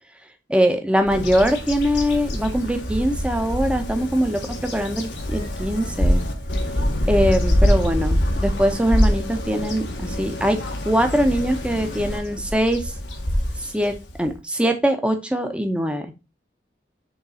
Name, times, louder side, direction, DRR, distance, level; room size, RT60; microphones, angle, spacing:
voice 1, 0.5-6.2 7.1-12.9 13.6-16.1, equal, 5° right, 6 dB, 1.0 m, -22 dB
Bird vocalization bird call bird song, 1.1-14.3, equal, 85° left, 1.8 m, -25 dB
6.4 x 3.8 x 5.6 m, 0.27 s
head